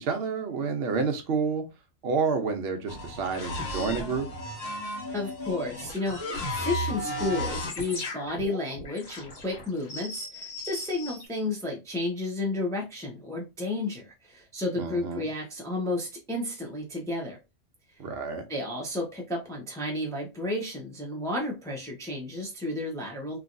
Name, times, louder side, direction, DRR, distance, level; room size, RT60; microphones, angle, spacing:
voice 1, 0.0-1.6 2.0-4.3 14.8-15.2 18.0-18.4, right 5 dB, 60° right, 0.9 m, -29 dB
sound 1, 2.9-11.3, left 1 dB, 90° left, 1.6 m, -35 dB
voice 2, 5.1-6.2 6.6-17.4 18.5-23.4, left 2 dB, 5° left, 0.6 m, -32 dB
3.0 x 2.7 x 2.5 m
omnidirectional pair, 1.3 m